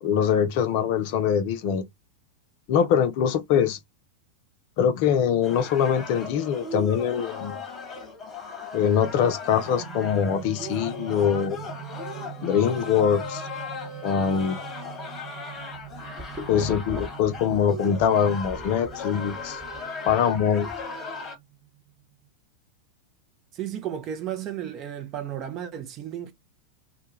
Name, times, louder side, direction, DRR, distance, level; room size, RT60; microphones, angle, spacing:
voice 1, 0.0-1.8 2.7-3.8 4.8-7.6 8.7-11.6 12.4-13.4 14.0-14.6 16.5-19.6 20.0-20.7, left 8 dB, 45° left, 0.5 m, -23 dB
sound 1, 5.4-21.4, left 3 dB, 20° left, 1.0 m, -37 dB
sound 2, 9.6-22.3, right 12 dB, 70° right, 0.7 m, -44 dB
sound 3, 15.6-18.1 18.4-20.8, left 1 dB, 15° right, 0.9 m, -39 dB
voice 2, 23.5-26.3, right 10 dB, 35° right, 0.5 m, -33 dB
2.2 x 2.2 x 2.8 m
figure-of-eight pair, 90°, 0 cm